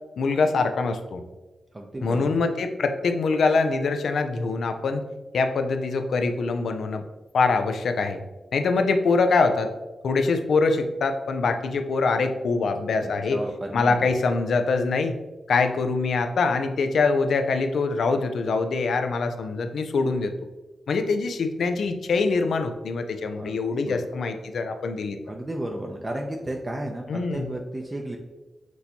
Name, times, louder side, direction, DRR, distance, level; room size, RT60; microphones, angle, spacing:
voice 1, 0.2-1.2 2.0-5.0 5.3-7.0 7.3-8.2 8.5-9.7 10.0-13.4 13.7-15.1 15.5-20.3 20.9-25.2 27.1-27.5, left 4 dB, 80° left, 7 dB, 0.4 m, -24 dB
voice 2, 1.7-2.4 13.0-14.1 23.3-24.0 25.3-28.2, right 1 dB, 25° right, 1 dB, 0.5 m, -33 dB
6.1 x 2.7 x 2.8 m, 1.1 s
cardioid pair, 80°, 0 cm